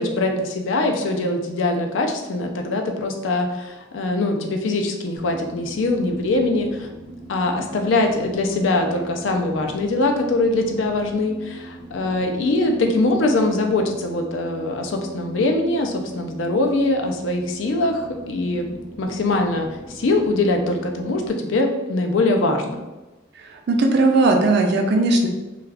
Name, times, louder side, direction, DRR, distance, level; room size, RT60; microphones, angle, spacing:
voice 1, 0.0-6.9 7.3-18.7 19.0-19.7 19.9-22.8, left 2 dB, 75° left, 3 dB, 0.4 m, -22 dB
sound 1, 5.2-21.3, right 2 dB, 25° right, 0.8 m, -40 dB
voice 2, 23.3-25.3, right 2 dB, 60° right, 3 dB, 0.4 m, -18 dB
2.4 x 2.3 x 3.3 m, 1.1 s
head